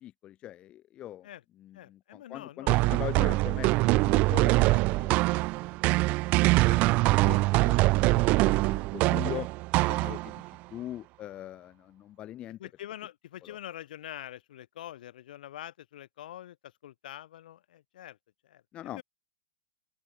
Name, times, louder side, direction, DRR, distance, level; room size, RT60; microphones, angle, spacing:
voice 1, 0.0-1.3 1.6-6.2 6.4-9.5 10.1-10.4 10.7-12.6 13.4-13.6 18.7-19.0, left 13 dB, 20° left, 0.8 m, -42 dB
voice 2, 1.7-3.2 9.9-10.2 12.6-18.2 18.4-19.0, left 12 dB, 65° left, 1.8 m, -45 dB
sound 1, 2.7-10.5, right 22 dB, 30° right, 0.5 m, -24 dB
open air
hypercardioid pair, 160°, 5 cm